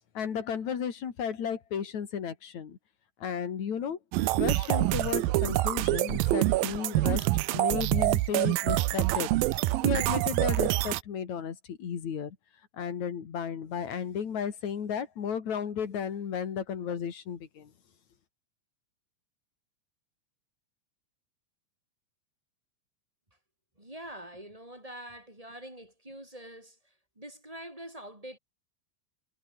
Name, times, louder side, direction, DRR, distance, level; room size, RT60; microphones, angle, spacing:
voice 1, 0.2-2.8 3.2-4.0 4.4-9.3 9.8-12.4 12.7-17.7, left 7 dB, 55° left, 3.8 m, -34 dB
sound 1, 4.1-11.0, right 18 dB, 90° right, 2.6 m, -26 dB
voice 2, 23.8-28.4, right 1 dB, 10° right, 4.4 m, -45 dB
omnidirectional pair, 4.1 m